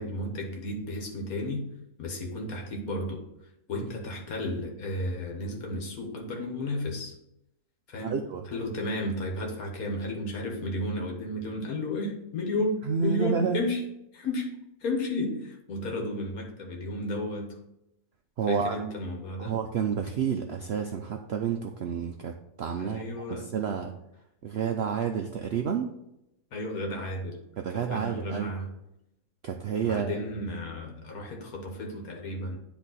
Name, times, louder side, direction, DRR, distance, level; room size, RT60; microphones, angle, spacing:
voice 1, 0.0-1.7 2.0-3.2 3.7-7.2 7.9-8.2 8.5-13.8 14.1-17.6 18.5-19.6 22.8-23.5 26.5-27.4 27.7-28.7 29.8-32.6, left 1 dB, 70° left, 1 dB, 1.7 m, -33 dB
voice 2, 8.0-8.4 12.9-13.6 18.4-18.8 19.4-23.9 24.4-25.9 27.6-28.6 29.4-30.2, right 7 dB, 70° right, 4 dB, 0.6 m, -30 dB
10.0 x 3.4 x 4.1 m, 0.83 s
omnidirectional pair, 1.6 m